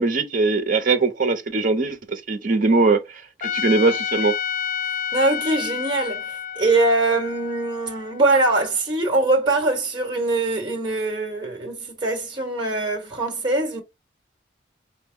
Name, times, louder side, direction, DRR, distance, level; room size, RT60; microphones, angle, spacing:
voice 1, 0.0-3.2 3.5-4.4, right 3 dB, 50° right, 0.7 m, -21 dB
Trumpet, 3.4-8.6, left 8 dB, 45° left, 0.3 m, -29 dB
voice 2, 5.1-13.8, right 2 dB, 25° right, 1.1 m, -22 dB
4.3 x 2.2 x 3.5 m
head